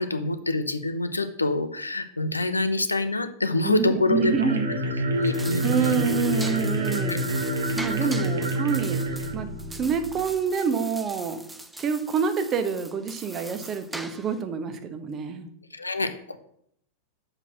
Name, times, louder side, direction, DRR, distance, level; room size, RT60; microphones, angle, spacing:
voice 1, 0.0-4.5 5.1-6.1 7.1-7.2 8.2-8.5 15.7-16.4, left 2 dB, 80° left, 10 dB, 0.6 m, -26 dB
voice 2, 3.6-4.7 5.6-7.3 7.8-9.0 9.3-11.4 11.8-15.5, right 6 dB, 30° right, 9 dB, 1.0 m, -27 dB
sound 1, 4.0-10.3, right 1 dB, 70° right, 1.3 m, -28 dB
sound 2, 5.1-14.4, right 1 dB, 5° right, 0.6 m, -41 dB
6.7 x 5.8 x 6.1 m, 0.70 s
figure-of-eight pair, 90°, 0 cm